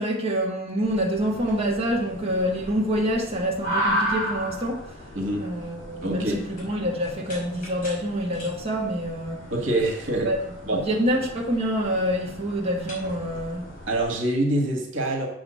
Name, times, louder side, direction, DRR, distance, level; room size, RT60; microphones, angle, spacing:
voice 1, 0.0-4.9 5.4-9.4 10.2-10.4 10.9-13.6, equal, 30° right, -2 dB, 1.4 m, -26 dB
sound 1, 0.8-14.1, equal, 45° left, 3.6 m, -35 dB
voice 2, 6.0-6.4 9.5-10.3 10.7-10.9 13.9-15.3, right 1 dB, 80° right, 2 dB, 1.6 m, -25 dB
7.1 x 4.9 x 6.3 m, 0.72 s
head